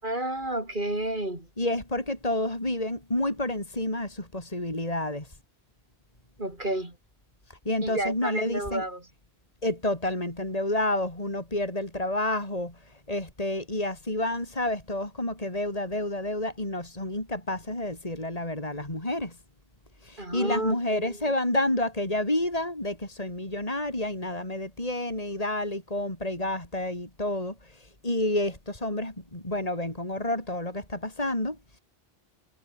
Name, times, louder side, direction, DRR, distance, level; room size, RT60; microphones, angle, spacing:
voice 1, 0.0-1.5 6.4-7.0 7.8-9.1 20.2-21.3, right 1 dB, 50° right, 5.7 m, -31 dB
voice 2, 1.6-5.3 7.6-8.8 9.6-12.8 13.1-19.4 20.0-31.8, left 1 dB, 35° left, 4.9 m, -29 dB
omnidirectional pair, 1.0 m